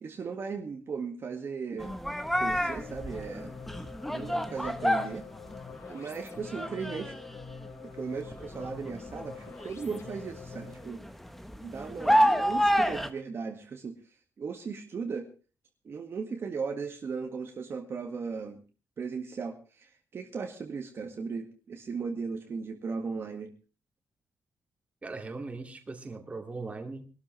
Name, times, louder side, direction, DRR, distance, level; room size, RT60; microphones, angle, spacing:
voice 1, 0.0-2.0 2.4-3.5 4.1-5.2 5.9-7.1 8.0-11.0 11.6-14.0 14.4-15.3 15.8-18.6 19.0-23.5, right 5 dB, 45° right, 3 dB, 1.9 m, -37 dB
sound 1, 1.8-6.0 6.2-7.7 8.2-13.1, equal, 5° left, 1.1 m, -29 dB
sound 2, 2.2-11.0, left 5 dB, 55° left, 4.5 m, -46 dB
voice 2, 25.0-27.1, right 3 dB, 20° right, 4 dB, 2.4 m, -39 dB
22.5 x 13.0 x 3.3 m, 0.34 s
wide cardioid pair, 155°, 6 cm